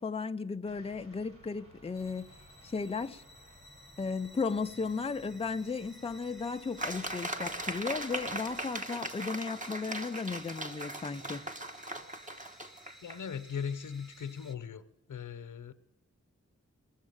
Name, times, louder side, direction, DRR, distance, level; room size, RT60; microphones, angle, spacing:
voice 1, 0.0-2.3 2.6-3.2 4.0-11.5, left 4 dB, 20° left, 0.5 m, -35 dB
sound 1, 0.6-8.7, right 1 dB, 45° right, 6.8 m, -57 dB
sound 2, 1.9-14.6, equal, ahead, 1.2 m, -56 dB
sound 3, 6.8-13.2, right 1 dB, 25° right, 1.2 m, -39 dB
voice 2, 13.0-14.8 15.1-15.7, left 7 dB, 90° left, 0.9 m, -38 dB
20.0 x 7.3 x 8.9 m
wide cardioid pair, 140°, 30 cm